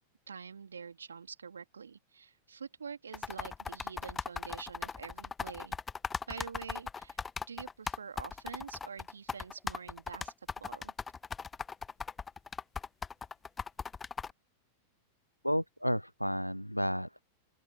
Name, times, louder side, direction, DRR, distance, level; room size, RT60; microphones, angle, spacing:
voice 1, 0.3-5.8 6.3-10.9, right 6 dB, 70° right, 2.7 m, -46 dB
sound 1, 3.1-14.3, left 5 dB, 15° left, 1.1 m, -38 dB
voice 2, 15.4-17.2, equal, 90° left, 0.4 m, -32 dB
figure-of-eight pair, 90°, 0 cm